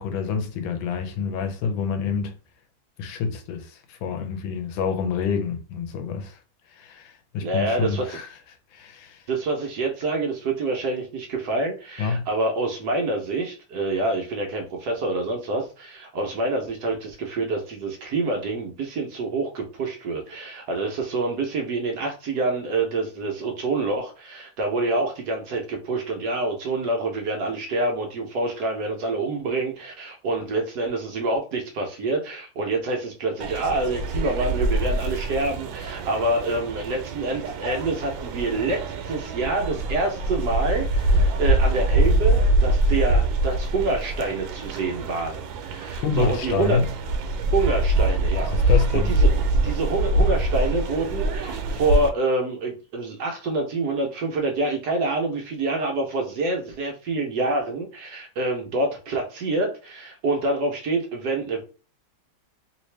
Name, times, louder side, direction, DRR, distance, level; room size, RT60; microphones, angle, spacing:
voice 1, 0.0-2.3 3.0-6.4 6.7-8.3 8.7-9.2 12.0-12.2 45.9-46.8 48.4-49.1, left 5 dB, 80° left, 1.4 m, -27 dB
voice 2, 7.4-8.2 9.3-46.8 47.5-49.3 49.6-61.6, right 2 dB, 65° right, 1.1 m, -27 dB
sound 1, 33.4-52.1, right 1 dB, 85° right, 1.4 m, -24 dB
3.2 x 2.8 x 3.1 m
omnidirectional pair, 2.2 m